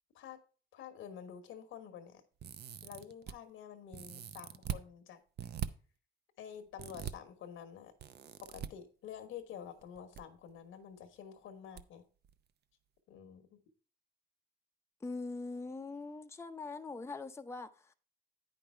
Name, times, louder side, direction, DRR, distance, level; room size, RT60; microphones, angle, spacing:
voice 1, 0.7-2.2 2.8-5.2 6.4-7.9 8.4-12.1 13.1-13.6, left 8 dB, 85° left, 1.2 m, -49 dB
sound 1, 2.4-3.3 3.9-4.8 5.4-5.7 6.8-7.1 8.0-8.7 9.8-10.2 10.5-10.6 11.8-11.9 12.2-12.3, right 9 dB, 55° right, 0.6 m, -41 dB
voice 2, 15.0-17.9, left 3 dB, 15° left, 0.6 m, -42 dB
9.1 x 5.4 x 4.4 m
cardioid pair, 90°, 20 cm